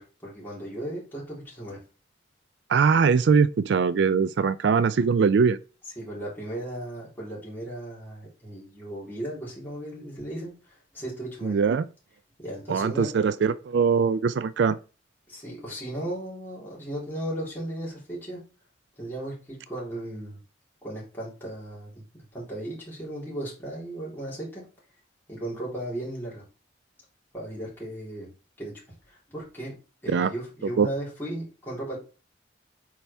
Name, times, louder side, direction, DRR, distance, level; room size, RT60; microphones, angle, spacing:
voice 1, 0.0-1.8 5.9-11.6 12.4-13.1 15.3-18.4 19.0-20.4 20.8-22.0 22.3-24.6 25.3-26.4 27.3-28.3 28.6-28.7 29.1-29.7 30.0-32.0, right 1 dB, 10° left, 3.6 m, -36 dB
voice 2, 2.7-5.6 11.4-11.9 12.7-14.8 30.1-30.3 30.8-30.9, right 5 dB, 65° right, 0.3 m, -21 dB
8.3 x 4.7 x 3.4 m
head